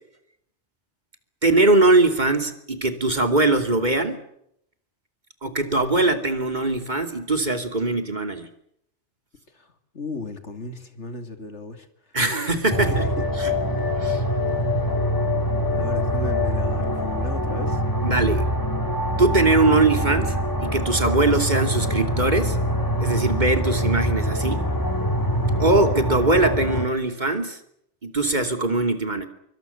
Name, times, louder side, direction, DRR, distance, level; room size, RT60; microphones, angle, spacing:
voice 1, 1.4-4.2 5.4-8.5 12.1-13.6 14.0-14.2 18.0-18.4 19.2-20.3 20.6-22.6 23.0-24.6 25.6-27.6 28.0-29.3, right 2 dB, 40° right, 7 dB, 2.9 m, -21 dB
voice 2, 9.9-11.9 12.8-13.2 15.8-17.8, left 3 dB, 75° left, 8 dB, 3.0 m, -35 dB
sound 1, 12.7-26.9, equal, 15° left, 2.9 m, -24 dB
25.5 x 24.0 x 7.0 m, 0.74 s
omnidirectional pair, 1.2 m